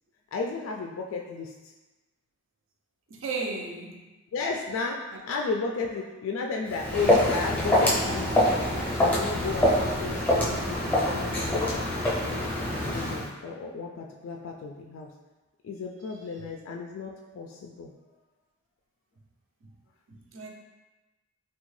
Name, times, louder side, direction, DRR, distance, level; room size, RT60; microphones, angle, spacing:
voice 1, 0.3-1.5 4.3-5.0 5.3-8.3 9.0-12.5 12.9-15.1 15.6-17.9, left 4 dB, 70° left, 0.3 m, -33 dB
voice 2, 3.1-4.0 20.1-20.5, right 3 dB, 65° right, 0.5 m, -34 dB
Walk footsteps, 6.7-13.3, left 1 dB, 10° left, 0.6 m, -25 dB
3.5 x 2.2 x 3.1 m
head